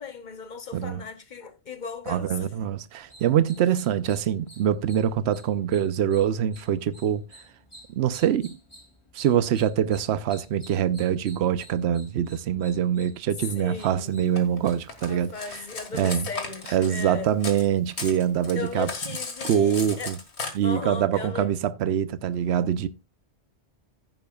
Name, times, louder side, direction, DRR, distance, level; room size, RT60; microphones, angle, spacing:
voice 1, 0.0-2.5 13.5-14.2 15.1-17.3 18.5-20.2 20.6-21.5, left 5 dB, 45° left, 1.0 m, -36 dB
voice 2, 0.7-1.0 2.1-7.2 8.0-8.6 9.1-15.3 15.9-16.3 16.7-18.9 19.4-20.2 20.6-22.9, right 9 dB, 75° right, 0.9 m, -24 dB
sound 1, 3.0-15.0, equal, 25° left, 4.6 m, -52 dB
Cutlery silverware, 14.4-17.7 17.9-20.5, left 4 dB, 75° left, 2.1 m, -36 dB
15.0 x 7.7 x 2.3 m
omnidirectional pair, 1.1 m